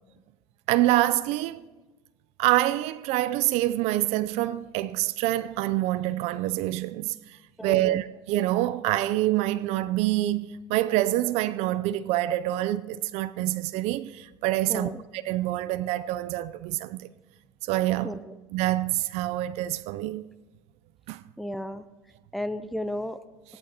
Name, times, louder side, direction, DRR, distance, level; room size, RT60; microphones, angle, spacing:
voice 1, 0.7-1.7 2.4-17.1 17.6-18.2 18.5-20.2 21.1-21.2, right 15 dB, 65° right, 0.5 m, -26 dB
voice 2, 7.6-8.0 14.7-15.0 18.0-18.4 21.4-21.8 22.3-23.2, left 1 dB, ahead, 0.6 m, -33 dB
21.0 x 17.5 x 2.9 m
hypercardioid pair, 80°, 12 cm